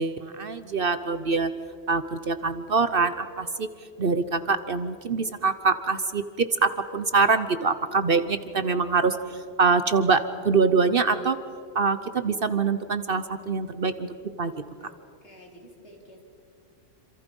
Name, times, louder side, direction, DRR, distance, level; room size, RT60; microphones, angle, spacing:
voice 1, 0.0-1.5 1.9-3.7 4.0-11.4 11.7-14.1 14.4-14.5, right 4 dB, 50° right, 11 dB, 1.0 m, -24 dB
voice 2, 15.2-16.2, equal, 60° left, 0 dB, 4.0 m, -50 dB
27.5 x 27.0 x 5.4 m, 2.3 s
omnidirectional pair, 1.3 m